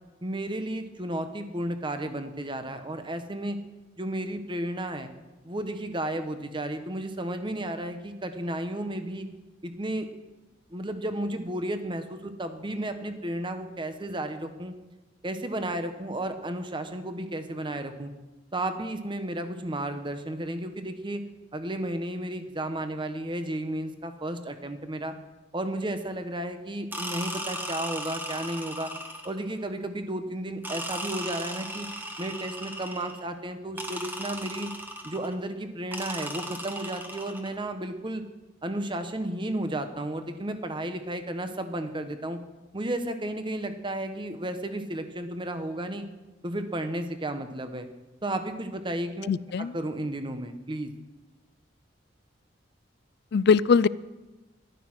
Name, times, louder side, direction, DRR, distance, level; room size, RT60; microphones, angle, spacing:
voice 1, 0.2-3.6 4.0-5.1 5.4-9.3 9.6-10.1 10.7-14.7 15.2-18.1 18.5-21.2 21.5-25.1 25.5-28.9 29.2-31.9 32.2-34.7 35.0-38.2 38.6-42.4 42.7-46.1 46.4-47.9 48.2-49.3 49.7-50.9, right 1 dB, 25° right, 8 dB, 1.1 m, -33 dB
sound 1, 26.9-29.5 30.6-33.2 33.8-35.4 35.9-37.6, right 1 dB, 10° right, 1.5 m, -37 dB
voice 2, 49.3-49.8 53.3-53.9, left 5 dB, 60° left, 19 dB, 0.4 m, -21 dB
14.0 x 11.5 x 6.2 m, 1.1 s
head